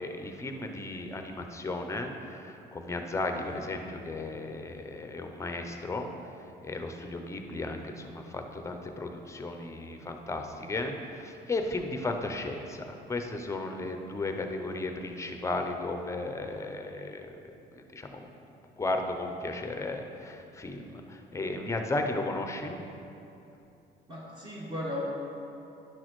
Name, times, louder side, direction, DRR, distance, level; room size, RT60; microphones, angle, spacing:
voice 1, 0.0-6.3 6.6-17.4 17.7-18.3 18.8-22.8, left 2 dB, 15° left, 4 dB, 0.6 m, -35 dB
voice 2, 24.1-25.1, left 1 dB, 25° right, -5 dB, 1.4 m, -36 dB
10.5 x 6.1 x 3.1 m, 2.8 s
cardioid pair, 125°, 18 cm